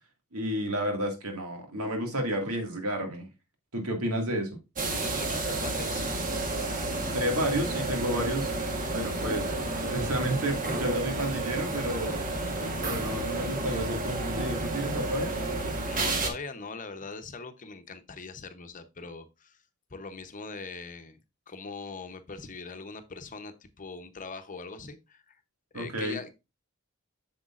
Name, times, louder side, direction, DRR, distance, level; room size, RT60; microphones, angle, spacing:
voice 1, 0.3-3.3 3.7-4.5 7.1-8.5 8.9-9.5 9.9-12.2 12.8-15.3 25.7-26.2, equal, 75° right, 4 dB, 2.1 m, -31 dB
sound 1, 4.8-16.3, right 2 dB, 40° right, 1.3 m, -31 dB
voice 2, 4.9-6.1 12.4-12.7 15.9-19.6 19.9-21.2 21.5-25.4 25.7-26.4, left 4 dB, 35° left, 8 dB, 0.9 m, -41 dB
8.0 x 6.7 x 2.5 m, 0.26 s
head